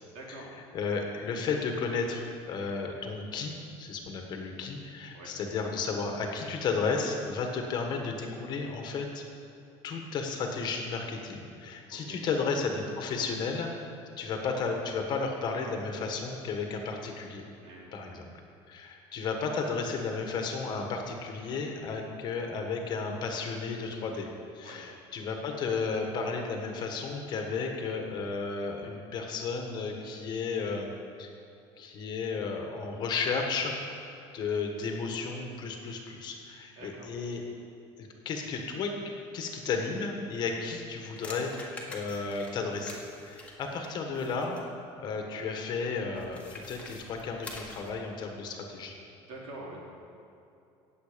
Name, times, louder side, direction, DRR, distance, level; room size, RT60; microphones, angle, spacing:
voice 1, 0.1-0.5 5.1-5.3 11.9-12.2 17.6-18.1 24.6-24.8 36.7-37.1 49.2-49.8, right 2 dB, 65° right, -3 dB, 3.4 m, -45 dB
voice 2, 0.7-3.5 3.8-9.2 9.8-13.9 14.2-17.4 17.9-18.2 18.7-24.3 24.5-30.9 31.2-31.3 31.8-33.9 34.3-37.4 38.0-39.0 39.3-44.6 45.0-48.9, left 4 dB, 40° left, 3 dB, 1.5 m, -33 dB
sound 1, 40.7-44.7 46.1-48.0, left 2 dB, 10° left, 1.6 m, -46 dB
18.0 x 7.8 x 5.2 m, 2.6 s
cardioid pair, 160°, 11 cm